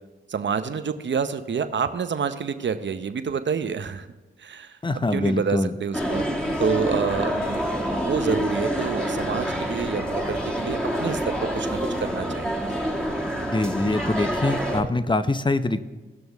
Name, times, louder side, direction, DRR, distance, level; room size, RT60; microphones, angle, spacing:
voice 1, 0.3-4.1 4.4-6.2 6.6-12.6, right 6 dB, 60° right, 10 dB, 0.8 m, -28 dB
voice 2, 4.8-5.7 13.5-15.8, left 2 dB, 20° left, 11 dB, 0.8 m, -24 dB
sound 1, 5.9-14.8, equal, 5° left, 2.2 m, -27 dB
17.5 x 6.2 x 3.5 m, 1.2 s
cardioid pair, 45°, 21 cm